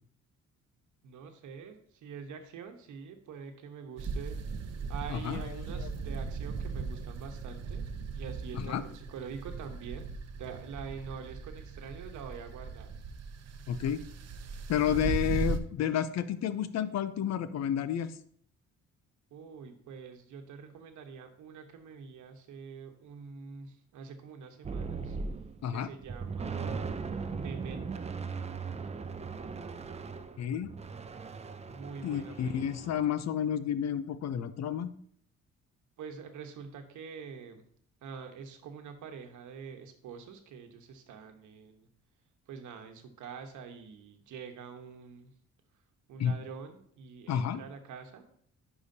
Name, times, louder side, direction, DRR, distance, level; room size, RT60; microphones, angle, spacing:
voice 1, 1.0-7.9 8.1-10.1 10.3-12.9 14.8-15.6 19.3-25.2 25.7-26.9 27.3-28.1 31.7-32.9 36.0-37.6 38.0-41.9 42.5-45.3 46.1-48.3, right 6 dB, 75° right, 6 dB, 1.1 m, -45 dB
sound 1, 4.0-15.6, right 4 dB, 55° right, 0.7 m, -38 dB
voice 2, 5.1-5.9 8.5-8.8 13.7-14.0 14.7-18.1 25.6-25.9 30.4-30.7 32.0-34.9 46.2-46.3 47.3-47.6, left 9 dB, 60° left, 13 dB, 0.6 m, -31 dB
sound 2, 24.6-25.7 26.0-33.1, right 5 dB, 20° right, 0.5 m, -38 dB
10.0 x 4.9 x 2.8 m, 0.62 s
cardioid pair, 90°, 30 cm